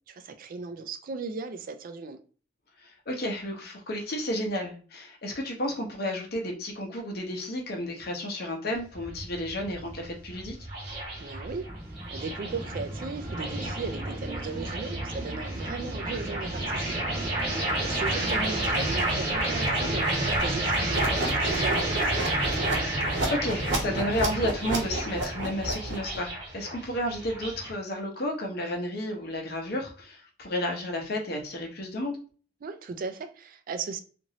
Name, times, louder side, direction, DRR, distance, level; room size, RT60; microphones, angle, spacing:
voice 1, 0.1-2.2 11.2-11.7 12.1-17.0 17.3-22.4 32.6-34.0, right 4 dB, 50° right, 0.4 m, -37 dB
voice 2, 2.8-10.6 18.2-18.5 23.3-32.2, left 1 dB, 55° left, 0.8 m, -32 dB
sound 1, 8.7-27.7, right 1 dB, 35° right, 1.2 m, -30 dB
sound 2, 11.6-20.8, equal, 5° left, 0.8 m, -47 dB
sound 3, 20.9-26.2, right 2 dB, 70° right, 0.9 m, -32 dB
2.9 x 2.5 x 2.7 m
head